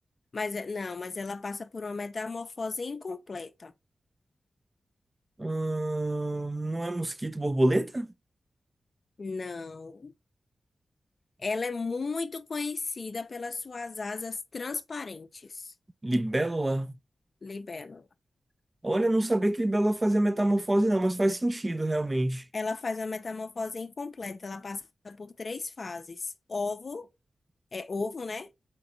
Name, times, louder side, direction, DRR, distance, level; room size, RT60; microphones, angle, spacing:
voice 1, 0.3-3.7 9.2-10.1 11.4-15.7 17.4-18.1 22.5-27.1 27.7-28.5, left 4 dB, 55° left, 0.4 m, -35 dB
voice 2, 5.4-8.1 16.0-16.9 18.8-22.4, right 1 dB, 25° right, 0.3 m, -26 dB
4.3 x 3.9 x 2.6 m
cardioid pair, 60°, 0 cm